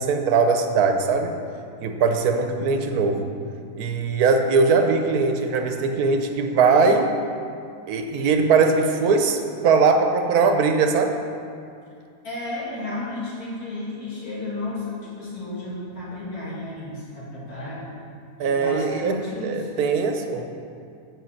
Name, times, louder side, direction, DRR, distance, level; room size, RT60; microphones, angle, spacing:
voice 1, 0.0-1.3 1.8-3.3 3.8-7.2 7.9-9.4 9.6-11.2 18.4-20.5, right 4 dB, 80° right, 5 dB, 1.3 m, -20 dB
voice 2, 12.2-17.9 18.4-19.7, left 2 dB, 75° left, -8 dB, 2.9 m, -33 dB
7.5 x 5.5 x 7.2 m, 2.4 s
omnidirectional pair, 1.6 m